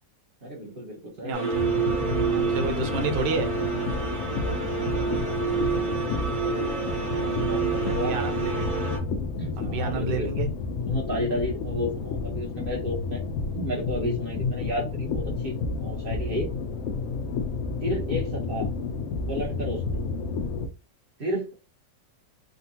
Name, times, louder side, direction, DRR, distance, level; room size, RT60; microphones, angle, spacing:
voice 1, 0.4-2.7 4.8-8.1 9.4-10.3 10.8-13.2 13.5-15.5 15.8-16.5 17.8-18.7 19.3-20.0 21.2-21.6, equal, 40° right, 1.0 m, -33 dB
voice 2, 1.2-1.5 2.3-3.5 8.1-8.8 9.6-10.5, right 4 dB, 80° right, 1.2 m, -30 dB
sound 1, 1.3-9.0, right 6 dB, 55° right, 1.8 m, -28 dB
sound 2, 1.5-20.7, left 4 dB, 85° left, 0.7 m, -30 dB
3.7 x 2.2 x 2.7 m
omnidirectional pair, 1.9 m